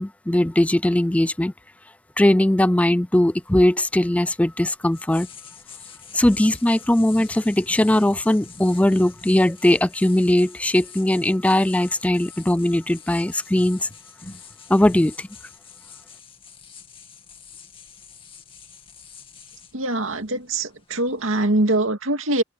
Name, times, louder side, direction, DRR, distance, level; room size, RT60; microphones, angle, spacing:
voice 1, 0.0-1.5 2.2-5.3 6.1-13.9 14.7-15.3, left 1 dB, 5° left, 0.3 m, -19 dB
sound 1, 3.3-21.7, left 5 dB, 25° left, 2.4 m, -45 dB
voice 2, 19.7-22.4, right 2 dB, 80° right, 2.3 m, -23 dB
head